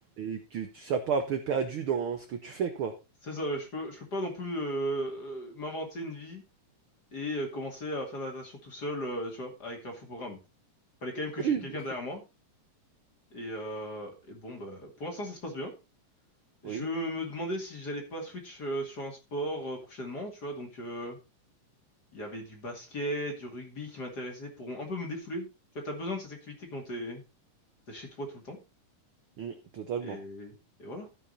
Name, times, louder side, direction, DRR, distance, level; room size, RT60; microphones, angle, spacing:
voice 1, 0.2-2.9 11.4-11.6 16.6-16.8 29.4-30.2, right 7 dB, 75° right, 7 dB, 1.2 m, -31 dB
voice 2, 3.2-6.4 7.1-10.4 11.0-12.2 13.3-15.7 16.6-21.2 22.1-25.5 25.7-27.2 27.9-28.6 30.0-31.2, equal, 35° left, 2 dB, 2.6 m, -36 dB
14.5 x 5.7 x 4.1 m, 0.28 s
omnidirectional pair, 3.7 m